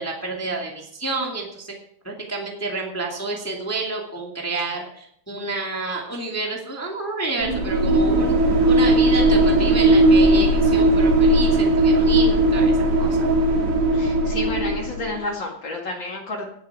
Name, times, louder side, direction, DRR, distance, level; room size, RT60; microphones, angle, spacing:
voice 1, 0.0-1.7 2.0-8.4 8.7-13.3, right 3 dB, 5° left, -1 dB, 1.3 m, -29 dB
sound 1, 7.4-15.2, right 1 dB, 45° right, 2.3 m, -18 dB
voice 2, 13.9-16.4, left 2 dB, 40° left, 1 dB, 2.0 m, -30 dB
18.5 x 8.2 x 4.8 m, 0.69 s
omnidirectional pair, 4.3 m